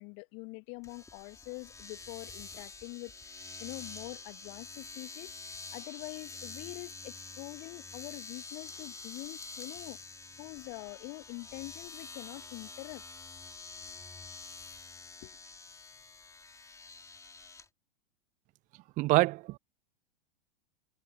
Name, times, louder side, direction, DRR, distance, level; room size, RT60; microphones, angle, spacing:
voice 1, 0.0-10.0 10.4-13.0 15.2-15.4, left 33 dB, 40° left, 1.6 m, -45 dB
Domestic sounds home sounds, 0.8-17.7, left 3 dB, 10° left, 3.2 m, -47 dB
voice 2, 19.0-19.6, right 21 dB, 25° right, 0.5 m, -25 dB
figure-of-eight pair, 95°, 31 cm